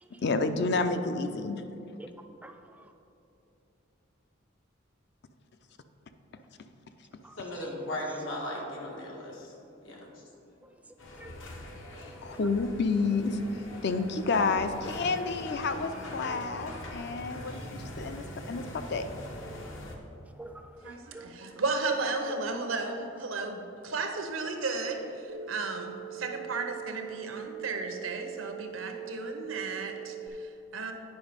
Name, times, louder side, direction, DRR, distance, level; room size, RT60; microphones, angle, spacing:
voice 1, 0.2-1.6 12.2-13.4 13.8-18.6 18.9-19.1, left 4 dB, 60° left, 9 dB, 0.5 m, -29 dB
voice 2, 2.4-2.9 7.2-7.4 10.6-10.8 11.2-11.5 12.0-12.4 20.3-21.4 27.4-27.5, right 2 dB, 5° right, 6 dB, 0.3 m, -49 dB
voice 3, 7.4-9.5 9.8-10.1, left 1 dB, 90° left, -2 dB, 1.7 m, -37 dB
sound 1, 11.0-20.0, left 1 dB, 75° left, 1.0 m, -42 dB
voice 4, 20.8-30.9, right 3 dB, 85° right, 5 dB, 0.9 m, -34 dB
sound 2, 25.3-30.3, right 11 dB, 60° right, 0.6 m, -42 dB
9.2 x 5.1 x 5.1 m, 2.7 s
head